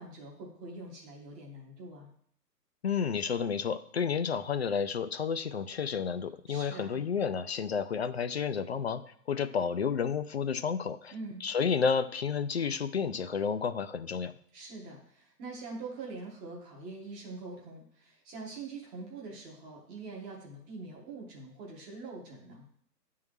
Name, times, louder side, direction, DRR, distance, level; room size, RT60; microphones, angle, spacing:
voice 1, 0.0-2.1 6.5-7.0 11.1-11.4 14.5-22.7, right 3 dB, 10° right, -3 dB, 0.7 m, -44 dB
voice 2, 2.8-11.1 11.4-14.3, left 6 dB, 45° left, 12 dB, 0.4 m, -31 dB
9.4 x 3.8 x 6.1 m, 0.66 s
figure-of-eight pair, 140°, 48 cm